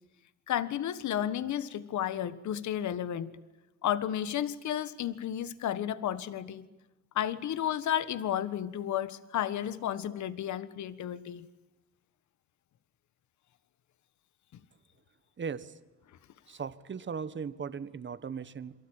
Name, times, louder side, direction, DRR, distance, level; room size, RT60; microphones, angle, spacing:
voice 1, 0.5-3.3 3.8-6.7 7.1-11.5, left 10 dB, 70° left, 14 dB, 1.5 m, -32 dB
voice 2, 15.4-15.7 16.5-18.7, right 6 dB, 40° right, 14 dB, 1.4 m, -38 dB
28.0 x 23.5 x 8.9 m, 1.0 s
cardioid pair, 90°, 30 cm